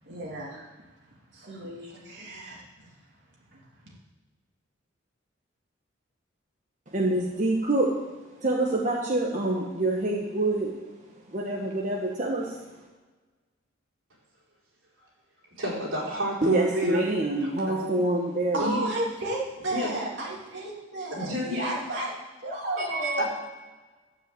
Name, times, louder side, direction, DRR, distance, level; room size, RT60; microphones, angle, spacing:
voice 1, 0.0-0.7 1.3-2.6 3.5-3.6 18.5-22.1 22.4-23.2, right 1 dB, 60° right, -4 dB, 2.9 m, -33 dB
voice 2, 6.9-7.9 8.4-10.7 11.3-12.6 16.4-18.7, right 2 dB, 40° right, -2 dB, 1.4 m, -26 dB
voice 3, 15.6-17.9 18.6-18.9 19.7-19.9 21.1-21.8 22.8-23.2, equal, 85° right, -4 dB, 4.6 m, -30 dB
12.5 x 7.8 x 7.9 m, 1.3 s
head